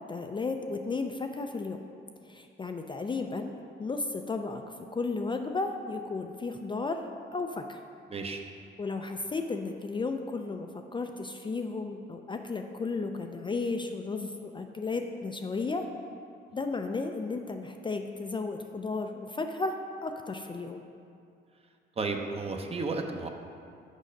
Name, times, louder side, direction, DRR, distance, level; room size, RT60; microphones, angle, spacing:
voice 1, 0.1-1.8 2.3-3.5 3.8-4.6 4.9-7.0 7.3-7.8 8.8-15.8 16.5-20.8, left 3 dB, 25° left, 5 dB, 0.4 m, -34 dB
voice 2, 8.1-8.4 22.0-23.3, right 3 dB, 30° right, 4 dB, 0.7 m, -33 dB
6.4 x 5.5 x 5.1 m, 2.4 s
cardioid pair, 90°, 20 cm